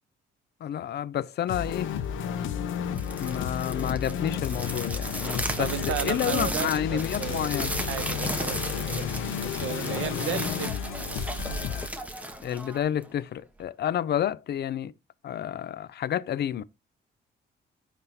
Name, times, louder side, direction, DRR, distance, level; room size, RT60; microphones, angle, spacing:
voice 1, 0.6-1.9 3.2-7.7 12.4-14.9 15.2-16.6, left 10 dB, 55° left, 0.5 m, -30 dB
sound 1, 1.5-11.9, left 8 dB, 80° left, 0.9 m, -32 dB
sound 2, 2.8-13.2, right 1 dB, 5° right, 1.2 m, -35 dB
voice 2, 5.6-10.7, right 12 dB, 85° right, 0.7 m, -34 dB
9.6 x 3.6 x 2.9 m
cardioid pair, 90°, 20 cm